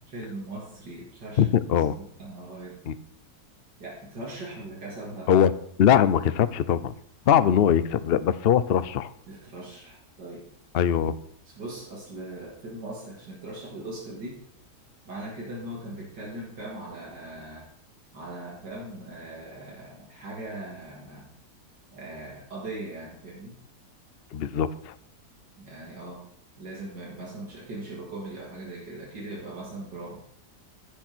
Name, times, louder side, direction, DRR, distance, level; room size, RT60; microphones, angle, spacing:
voice 1, 0.1-1.5 2.0-2.8 3.8-5.3 9.3-10.5 11.5-14.4 15.1-17.7 18.1-21.3 21.9-23.5 25.6-26.2 26.6-30.2, right 2 dB, 80° right, -4 dB, 3.4 m, -39 dB
voice 2, 1.4-2.0 2.9-3.0 5.3-5.5 5.8-6.9 7.3-9.1 10.7-11.1 24.3-24.9, left 9 dB, 65° left, 14 dB, 0.5 m, -21 dB
15.0 x 6.6 x 6.2 m, 0.68 s
omnidirectional pair, 1.8 m